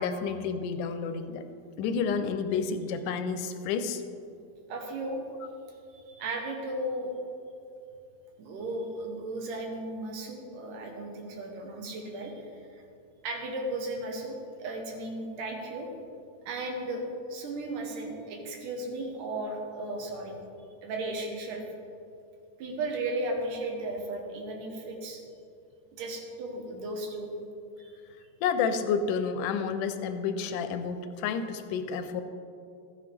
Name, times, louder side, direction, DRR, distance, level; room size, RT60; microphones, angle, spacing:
voice 1, 0.0-1.5 1.8-4.0 28.4-32.2, left 6 dB, 85° left, 9 dB, 2.1 m, -30 dB
voice 2, 4.7-5.2 5.9-7.1 8.4-12.8 13.2-15.9 16.5-17.0 17.3-20.3 20.8-21.6 22.6-25.2 26.0-27.3 27.8-27.9, right 2 dB, 85° right, 2 dB, 2.8 m, -35 dB
13.5 x 8.4 x 3.4 m, 2.6 s
omnidirectional pair, 3.7 m